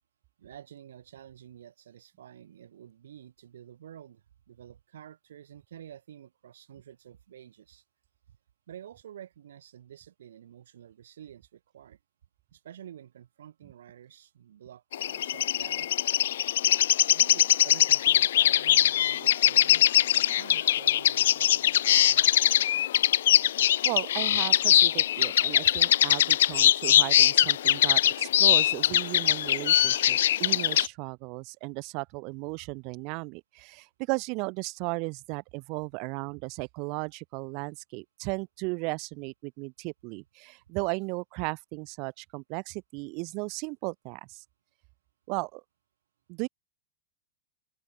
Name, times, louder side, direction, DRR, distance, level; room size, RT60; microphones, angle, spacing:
voice 1, 0.4-7.8 8.7-12.0 12.5-15.9 17.1-22.4, right 10 dB, 65° right, 6.2 m, -49 dB
sound 1, 14.9-30.9, left 11 dB, 60° left, 0.4 m, -22 dB
voice 2, 23.8-44.4 45.3-45.6 46.3-46.5, right 32 dB, 45° right, 1.1 m, -35 dB
open air
figure-of-eight pair, 90°, 0 cm